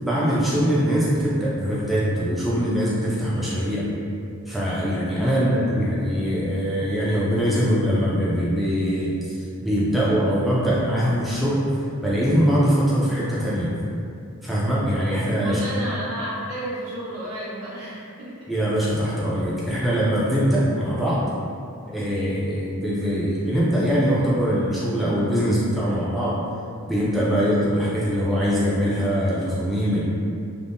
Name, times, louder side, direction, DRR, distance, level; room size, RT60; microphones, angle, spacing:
voice 1, 0.0-3.9 4.5-11.6 12.0-13.7 14.4-15.6 18.5-21.2 21.9-26.4 26.9-30.0, equal, ahead, -8 dB, 0.3 m, -22 dB
voice 2, 5.2-5.7 15.4-18.4, right 1 dB, 90° right, -10 dB, 1.0 m, -32 dB
3.4 x 2.0 x 2.5 m, 2.5 s
head